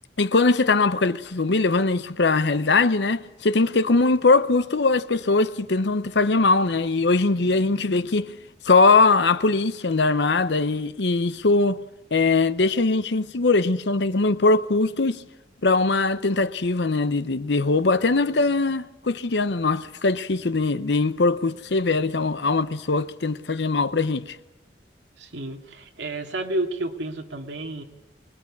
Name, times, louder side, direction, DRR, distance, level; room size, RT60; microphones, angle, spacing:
voice 1, 0.2-8.3 8.6-11.8 12.1-15.2 15.6-24.4, left 3 dB, 75° left, 0.8 m, -21 dB
voice 2, 25.2-27.8, right 2 dB, 80° right, 2.2 m, -31 dB
24.0 x 19.5 x 8.5 m
head